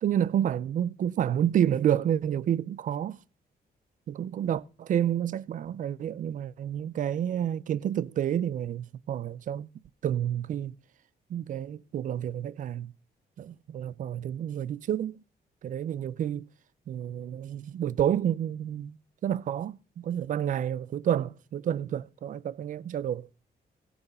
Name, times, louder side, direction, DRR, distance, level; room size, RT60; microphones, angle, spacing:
voice 1, 0.0-3.2 4.1-9.7 10.0-10.7 11.3-12.9 13.4-15.1 15.6-16.5 16.9-19.0 19.2-23.3, right 10 dB, 50° right, 0.5 m, -29 dB
17.0 x 6.8 x 5.5 m
wide cardioid pair, 180°, 17 cm